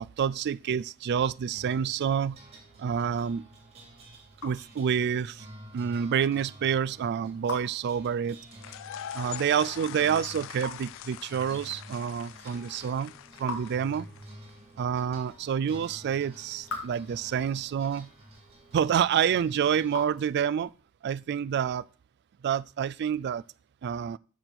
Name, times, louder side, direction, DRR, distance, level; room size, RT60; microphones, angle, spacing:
voice 1, 0.0-2.4 2.8-3.4 4.4-5.4 5.7-8.4 9.1-13.1 13.4-14.1 14.8-18.1 18.7-20.7 21.0-21.8 22.4-23.4 23.8-24.2, right 8 dB, 50° right, 0.3 m, -28 dB
sound 1, 1.5-20.0, right 1 dB, 30° right, 2.8 m, -51 dB
Raindrop / Drip, 3.7-20.9, left 3 dB, 85° left, 2.7 m, -47 dB
sound 2, 8.5-14.5, left 10 dB, 65° left, 0.3 m, -43 dB
6.9 x 6.2 x 5.8 m
head